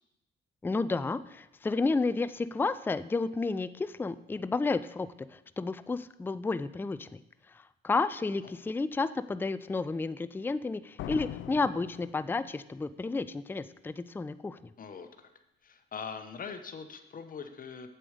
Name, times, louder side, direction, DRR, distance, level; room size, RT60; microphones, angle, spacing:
voice 1, 0.6-7.2 7.8-14.6, left 3 dB, 10° left, 13 dB, 0.4 m, -31 dB
voice 2, 8.2-8.5 14.8-15.3 15.6-17.9, left 6 dB, 45° left, 8 dB, 1.1 m, -42 dB
sound 1, 11.0-12.8, left 11 dB, 75° left, 0.4 m, -42 dB
7.8 x 7.6 x 5.0 m, 0.88 s
cardioid pair, 90°, 20 cm